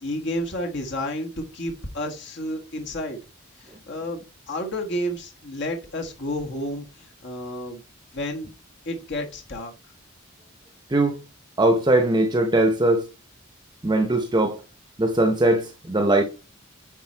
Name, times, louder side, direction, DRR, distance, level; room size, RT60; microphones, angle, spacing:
voice 1, 0.0-3.2 3.6-7.8 8.1-8.5 8.8-9.7, left 1 dB, 60° left, 1.4 m, -31 dB
voice 2, 11.6-13.0 13.8-14.6 15.0-16.2, right 2 dB, 20° right, 0.8 m, -20 dB
9.7 x 4.2 x 4.4 m
head